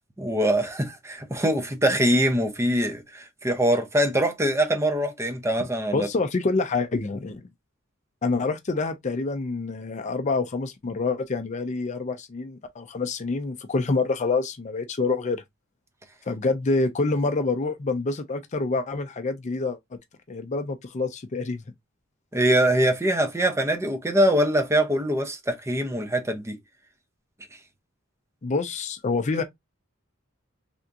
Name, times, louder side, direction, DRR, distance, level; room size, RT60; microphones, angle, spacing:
voice 1, 0.2-6.1 22.3-26.6, right 1 dB, 15° right, 0.6 m, -23 dB
voice 2, 5.9-7.4 8.2-15.4 16.3-19.8 20.3-21.6 28.4-29.4, left 3 dB, 35° left, 0.4 m, -27 dB
3.4 x 2.8 x 2.5 m
head